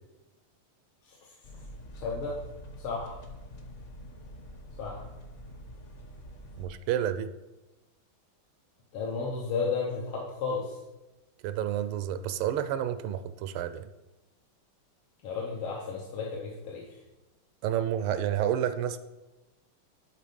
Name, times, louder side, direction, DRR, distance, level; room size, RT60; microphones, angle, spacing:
voice 1, 1.0-1.4 1.9-2.4 2.8-3.2 4.8-5.0 8.9-10.8 15.2-16.9, left 4 dB, 75° left, -3 dB, 1.9 m, -33 dB
sound 1, 1.4-6.7, equal, 45° left, 1.1 m, -46 dB
voice 2, 6.6-7.3 11.4-13.9 17.6-19.0, right 10 dB, 80° right, 11 dB, 1.4 m, -30 dB
11.0 x 4.0 x 5.2 m, 1.0 s
omnidirectional pair, 2.4 m